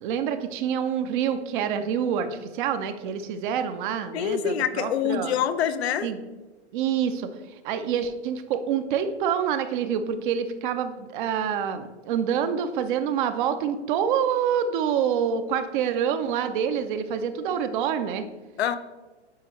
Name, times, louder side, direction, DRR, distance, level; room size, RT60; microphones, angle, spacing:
voice 1, 0.0-5.3 6.0-6.2 6.7-7.3 7.6-18.2, right 8 dB, 50° right, 9 dB, 0.6 m, -27 dB
voice 2, 4.1-6.1 18.6-18.8, left 9 dB, 65° left, 11 dB, 0.6 m, -25 dB
9.4 x 4.1 x 3.0 m, 1.2 s
hypercardioid pair, 110°, 34 cm